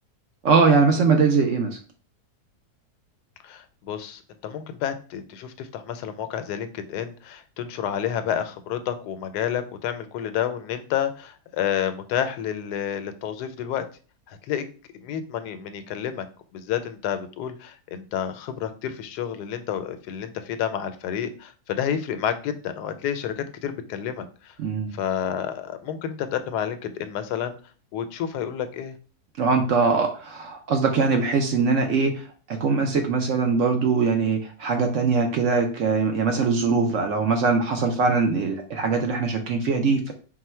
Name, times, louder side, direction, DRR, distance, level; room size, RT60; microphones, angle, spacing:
voice 1, 0.4-1.8 24.6-24.9 29.4-40.1, right 4 dB, 65° right, 4 dB, 0.8 m, -22 dB
voice 2, 3.4-13.9 14.3-14.6 15.0-16.3 16.5-24.6 24.9-27.5 27.9-29.0, left 9 dB, 90° left, 10 dB, 1.2 m, -30 dB
4.4 x 2.1 x 4.2 m, 0.39 s
omnidirectional pair, 1.7 m